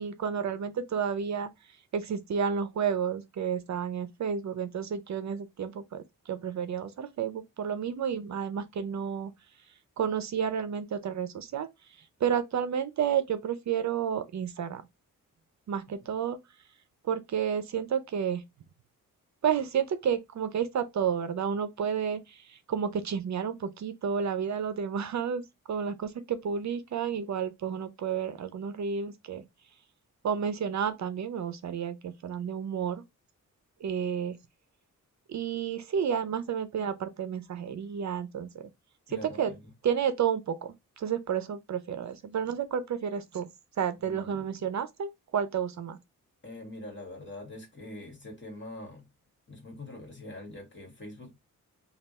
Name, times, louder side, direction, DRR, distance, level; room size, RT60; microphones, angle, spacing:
voice 1, 0.0-1.5 1.9-9.3 10.0-11.7 12.2-14.8 15.7-16.4 17.0-18.4 19.4-25.4 25.7-29.4 30.2-33.0 33.8-34.4 35.3-38.7 39.1-39.5 39.8-43.5 43.8-46.0, right 7 dB, 55° right, 0.5 m, -31 dB
voice 2, 39.1-39.6 44.0-44.5 46.4-49.0 49.5-51.4, left 1 dB, 35° left, 1.6 m, -44 dB
3.3 x 2.4 x 4.1 m
cardioid pair, 100°, 33 cm